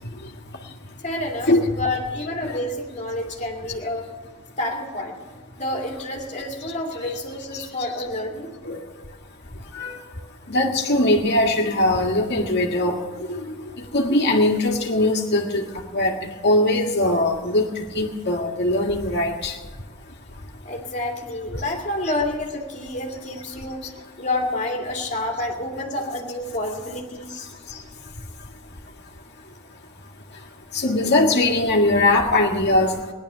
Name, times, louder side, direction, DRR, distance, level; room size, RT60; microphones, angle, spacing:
voice 1, 1.0-4.1 4.6-5.2 5.6-8.5 20.6-23.9 24.2-27.5, left 1 dB, 35° left, 0 dB, 2.4 m, -29 dB
voice 2, 10.5-13.0 13.3-13.4 13.9-15.7 15.9-16.1 16.4-17.7 18.0-19.5 30.7-32.9, left 1 dB, 50° left, 1 dB, 1.8 m, -20 dB
18.0 x 11.0 x 6.8 m, 1.3 s
head